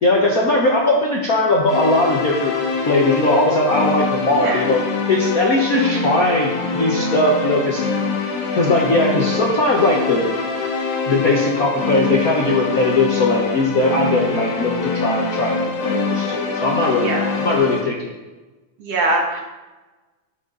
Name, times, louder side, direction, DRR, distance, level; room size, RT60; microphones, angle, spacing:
voice 1, 0.0-2.5 2.8-4.8 5.1-7.9 8.5-10.3 11.1-18.1, left 2 dB, 65° left, -1 dB, 0.8 m, -19 dB
sound 1, 1.7-17.8, left 4 dB, 90° left, 3.0 m, -24 dB
voice 2, 4.3-4.7 14.0-14.5 16.9-17.3 18.8-19.4, right 2 dB, 55° right, 0 dB, 2.6 m, -23 dB
10.5 x 10.5 x 4.0 m, 1.2 s
omnidirectional pair, 3.5 m